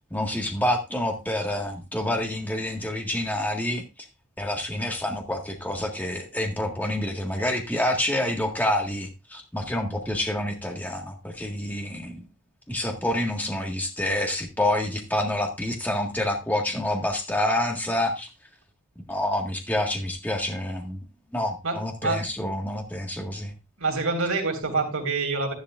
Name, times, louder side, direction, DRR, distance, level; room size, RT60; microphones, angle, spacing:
voice 1, 0.1-3.8 4.4-12.2 12.7-18.3 19.1-21.0 21.3-23.5, left 1 dB, 10° left, 2 dB, 1.8 m, -27 dB
voice 2, 21.6-22.2 23.8-25.5, right 3 dB, 75° right, 3 dB, 3.2 m, -26 dB
12.5 x 11.0 x 2.6 m, 0.25 s
head